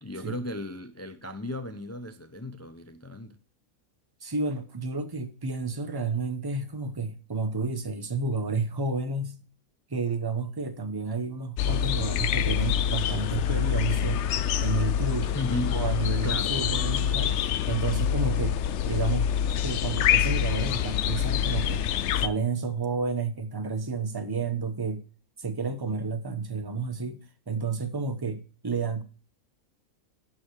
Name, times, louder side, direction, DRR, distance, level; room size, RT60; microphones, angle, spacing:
voice 1, 0.0-3.4 15.3-15.8 16.2-16.6, left 1 dB, 20° left, 0.4 m, -34 dB
voice 2, 4.2-9.4 9.9-14.2 14.6-15.3 15.7-17.4 17.7-18.6 18.9-19.3 19.6-25.0 25.4-27.2 27.5-29.0, right 4 dB, 20° right, 0.9 m, -31 dB
sound 1, 11.6-22.3, left 9 dB, 65° left, 0.8 m, -26 dB
10.5 x 5.5 x 4.7 m
omnidirectional pair, 1.5 m